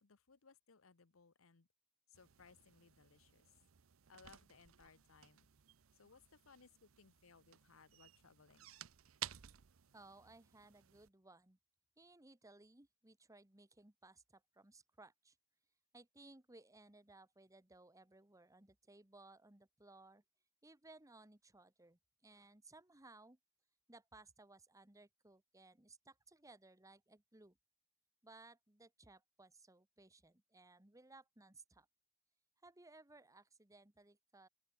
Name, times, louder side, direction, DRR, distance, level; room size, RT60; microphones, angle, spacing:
voice 1, 0.0-1.7 2.1-3.5 4.1-5.5 5.9-8.7, left 5 dB, 90° left, 1.0 m, -65 dB
sound 1, 2.1-11.1, right 12 dB, 85° right, 0.7 m, -55 dB
voice 2, 9.9-11.6 12.0-15.4 15.9-20.2 20.6-23.4 23.9-27.6 28.2-31.9 32.6-34.5, right 2 dB, 15° right, 1.4 m, -62 dB
open air
head